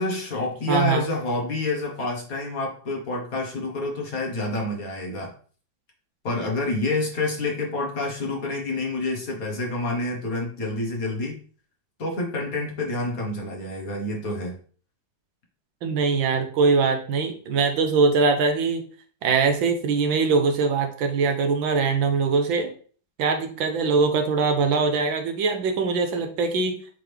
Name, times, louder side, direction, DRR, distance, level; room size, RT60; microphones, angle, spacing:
voice 1, 0.0-5.3 6.2-11.4 12.0-14.6, left 2 dB, 50° left, 0 dB, 1.7 m, -28 dB
voice 2, 0.7-1.0 15.8-18.8 19.2-22.7 23.2-26.8, right 4 dB, 80° right, 6 dB, 1.7 m, -22 dB
7.7 x 3.7 x 3.4 m, 0.43 s
omnidirectional pair, 2.1 m